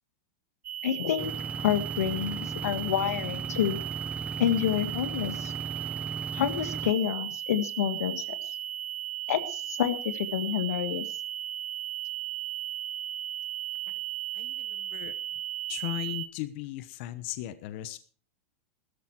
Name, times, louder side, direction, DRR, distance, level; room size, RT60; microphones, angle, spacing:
sound 1, 0.6-16.3, right 13 dB, 85° right, 1.7 m, -36 dB
voice 1, 0.8-1.3 1.6-3.8 4.4-5.5 6.3-8.2 9.3-11.0, left 10 dB, 90° left, 11 dB, 1.7 m, -28 dB
sound 2, 1.2-6.9, right 4 dB, 15° right, 0.7 m, -37 dB
voice 2, 14.3-15.1 15.7-18.0, left 15 dB, 50° left, 12 dB, 1.0 m, -37 dB
15.5 x 13.5 x 4.6 m, 0.40 s
supercardioid pair, 155°, 8 cm